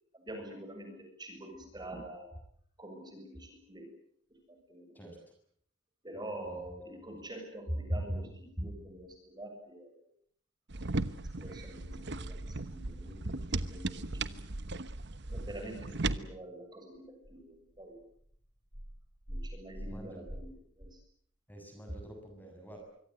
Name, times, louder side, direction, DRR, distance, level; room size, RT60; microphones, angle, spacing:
voice 1, 0.1-2.3 2.8-3.9 4.5-5.0 6.0-10.0 11.1-14.4 15.3-18.0 19.3-21.0, right 1 dB, 20° right, 4 dB, 7.1 m, -43 dB
sound 1, 10.7-16.2, right 2 dB, 60° right, 1.1 m, -37 dB
voice 2, 19.8-20.3 21.5-22.8, right 1 dB, 10° left, 3 dB, 6.9 m, -49 dB
25.0 x 24.5 x 8.0 m, 0.66 s
head